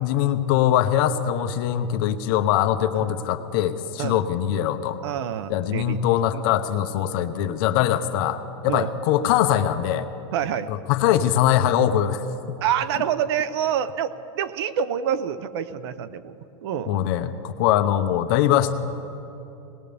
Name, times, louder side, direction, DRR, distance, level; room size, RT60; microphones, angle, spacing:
voice 1, 0.0-5.0 5.5-10.1 10.7-12.6 16.9-18.7, left 11 dB, 50° left, 9 dB, 0.9 m, -22 dB
voice 2, 5.0-6.0 6.3-6.4 7.8-8.0 8.7-8.9 10.3-10.7 12.6-16.3 16.6-17.0, right 9 dB, 65° right, 14 dB, 0.7 m, -27 dB
19.5 x 19.5 x 3.4 m, 2.9 s
supercardioid pair, 145°, 15 cm